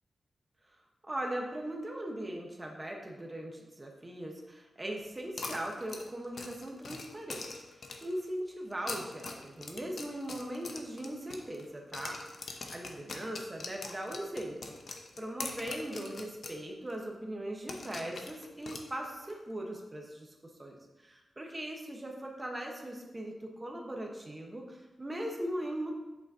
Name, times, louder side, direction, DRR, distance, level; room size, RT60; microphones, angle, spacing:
voice 1, 1.1-12.2 12.7-14.7 15.2-25.9, right 1 dB, 15° right, 1 dB, 1.0 m, -39 dB
sound 1, 5.4-8.2 8.7-11.7 11.9-16.6 16.9-17.0 17.7-19.3, left 3 dB, 55° left, 0.7 m, -43 dB
7.9 x 6.9 x 2.7 m, 1.1 s
wide cardioid pair, 165°, 0 cm